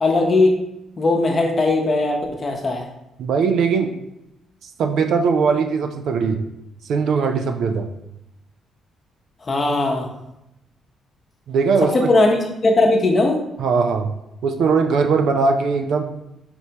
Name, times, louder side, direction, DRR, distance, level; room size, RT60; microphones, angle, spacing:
voice 1, 0.0-0.5 1.0-2.8 9.5-10.1 11.9-12.4 12.6-13.4, left 2 dB, 35° left, 1 dB, 0.8 m, -18 dB
voice 2, 3.2-3.9 4.8-6.4 6.9-7.9 11.5-11.9 13.6-14.1 14.4-16.0, right 5 dB, 70° right, 5 dB, 0.4 m, -19 dB
4.2 x 3.3 x 2.8 m, 0.86 s
cardioid pair, 90°, 0 cm